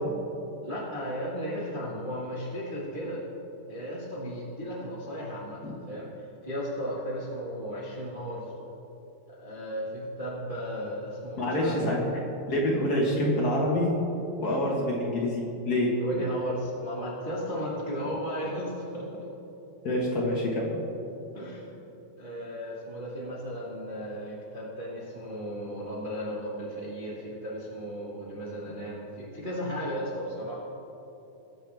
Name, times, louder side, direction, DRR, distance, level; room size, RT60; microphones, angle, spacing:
voice 1, 0.6-3.2 3.7-6.1 6.4-8.5 9.3-11.9 16.0-19.2 21.3-21.7 22.2-30.6, equal, 90° right, -6 dB, 0.4 m, -35 dB
voice 2, 11.4-12.1 12.5-13.9 14.4-15.9 19.8-20.7, left 1 dB, 75° left, -4 dB, 0.8 m, -26 dB
20.0 x 7.8 x 3.4 m, 3.0 s
omnidirectional pair, 4.2 m